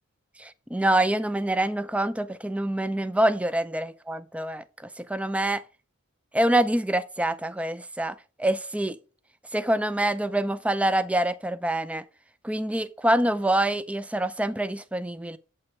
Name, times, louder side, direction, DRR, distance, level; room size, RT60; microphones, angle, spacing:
voice 1, 0.4-5.6 6.3-9.0 9.5-12.0 12.4-15.4, right 1 dB, 5° right, 0.4 m, -26 dB
8.1 x 5.6 x 4.5 m
head